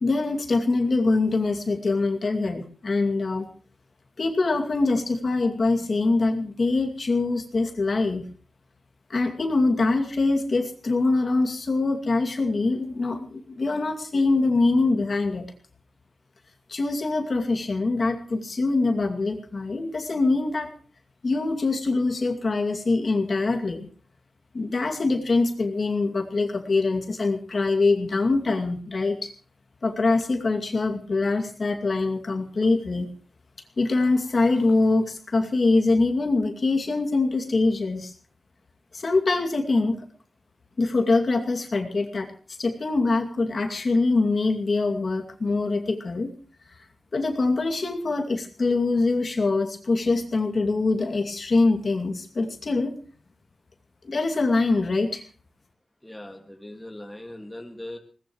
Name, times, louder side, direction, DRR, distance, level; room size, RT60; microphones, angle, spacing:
voice 1, 0.0-3.5 4.2-8.3 9.1-15.5 16.7-20.7 21.2-23.9 24.5-29.3 29.8-33.1 33.8-38.1 38.9-40.0 40.8-42.3 42.6-46.3 47.1-52.9 54.0-55.2, left 3 dB, 40° left, 3 dB, 2.3 m, -24 dB
voice 2, 56.0-58.0, left 1 dB, 5° left, 3 dB, 2.0 m, -40 dB
21.5 x 19.0 x 3.1 m, 0.40 s
wide cardioid pair, 160°, 0 cm